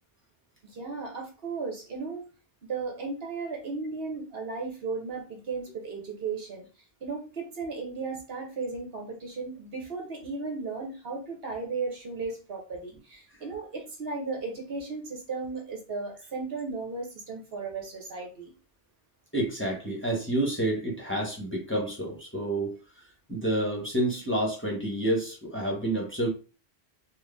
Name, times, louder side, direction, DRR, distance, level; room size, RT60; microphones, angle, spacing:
voice 1, 0.7-2.2 2.7-6.6 7.0-18.5, right 4 dB, 65° right, 1 dB, 1.2 m, -35 dB
voice 2, 19.3-22.7 23.3-26.3, right 1 dB, 10° left, -2 dB, 1.3 m, -29 dB
4.5 x 2.6 x 3.4 m, 0.34 s
omnidirectional pair, 1.1 m